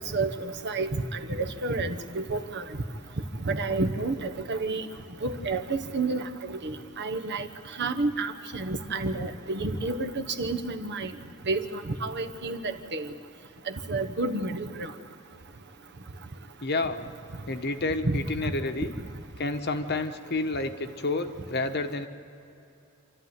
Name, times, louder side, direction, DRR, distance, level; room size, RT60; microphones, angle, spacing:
voice 1, 0.1-0.9 1.3-2.6 3.4-4.9 5.2-7.5 7.8-11.1 11.5-13.1 13.9-14.9 18.0-18.5, right 3 dB, 50° right, 7 dB, 1.1 m, -30 dB
voice 2, 16.6-17.1 17.5-18.9 19.4-22.1, left 2 dB, 50° left, 7 dB, 1.2 m, -30 dB
27.5 x 13.5 x 9.5 m, 2.7 s
head